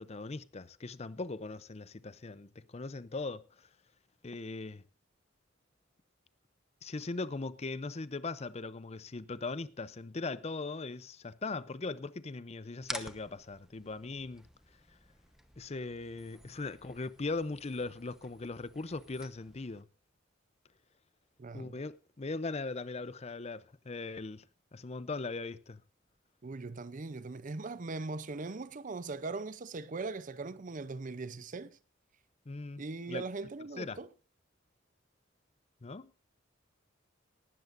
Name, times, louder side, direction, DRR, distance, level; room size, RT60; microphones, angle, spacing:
voice 1, 0.0-3.7 4.2-4.8 6.8-14.5 15.6-19.9 21.5-24.4 24.7-25.8 32.5-32.8 33.1-33.2 33.8-34.0 35.8-36.1, left 3 dB, 35° left, 0.6 m, -39 dB
sound 1, 12.8-19.8, right 1 dB, ahead, 1.0 m, -50 dB
voice 2, 21.4-21.8 26.4-31.8 32.8-34.1, right 3 dB, 40° right, 0.6 m, -40 dB
18.5 x 12.5 x 2.6 m
head